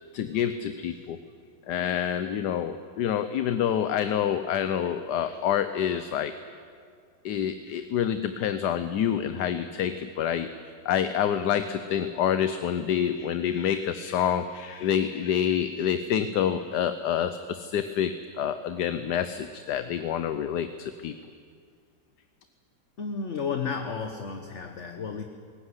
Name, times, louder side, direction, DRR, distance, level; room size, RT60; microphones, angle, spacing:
voice 1, 0.1-1.2 1.7-6.3 7.2-10.5 10.8-21.2, left 9 dB, 70° left, 11 dB, 1.4 m, -27 dB
voice 2, 23.0-25.2, left 5 dB, 45° left, 6 dB, 1.3 m, -32 dB
21.0 x 19.0 x 9.8 m, 2.1 s
omnidirectional pair, 1.9 m